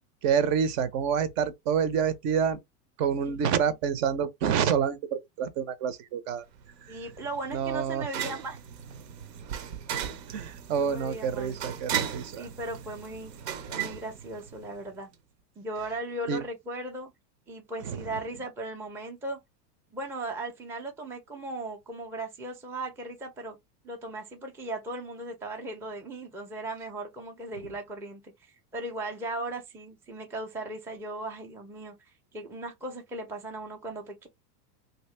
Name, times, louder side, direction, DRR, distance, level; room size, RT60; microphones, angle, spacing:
voice 1, 0.2-2.6 3.0-6.4 6.8-7.0 7.5-8.1 10.3-12.5 16.3-16.4 17.8-18.2, right 7 dB, 50° right, 0.8 m, -28 dB
voice 2, 3.3-3.7 6.9-8.6 10.7-11.6 12.4-13.3 13.7-15.1 15.6-17.1 17.5-19.4 19.9-23.6 23.8-32.0 32.3-34.3, right 2 dB, 5° right, 0.5 m, -37 dB
sound 1, 6.6-14.9, right 9 dB, 75° right, 1.0 m, -37 dB
2.8 x 2.8 x 3.2 m
hypercardioid pair, 115°, 50 cm